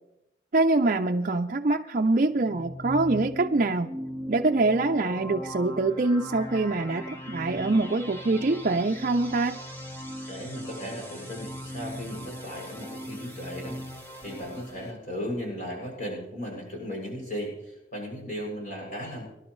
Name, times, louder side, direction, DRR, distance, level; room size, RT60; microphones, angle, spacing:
voice 1, 0.5-3.9 4.3-9.6, right 2 dB, 45° right, 3 dB, 0.5 m, -24 dB
sound 1, 2.4-14.9, equal, 10° left, 1.7 m, -39 dB
voice 2, 10.3-19.3, equal, 40° left, -1 dB, 7.1 m, -36 dB
24.5 x 11.5 x 3.2 m, 0.90 s
head